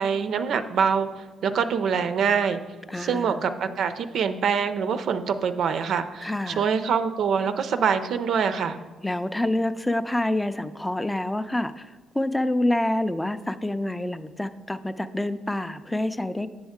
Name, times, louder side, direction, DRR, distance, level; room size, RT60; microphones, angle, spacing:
voice 1, 0.0-2.6 3.0-8.8, right 6 dB, 70° right, 9 dB, 0.4 m, -25 dB
voice 2, 2.9-3.4 6.2-6.7 9.0-11.9 12.1-16.5, left 1 dB, 10° left, 12 dB, 0.3 m, -27 dB
7.8 x 6.3 x 3.6 m, 1.3 s
cardioid pair, 90°, 0 cm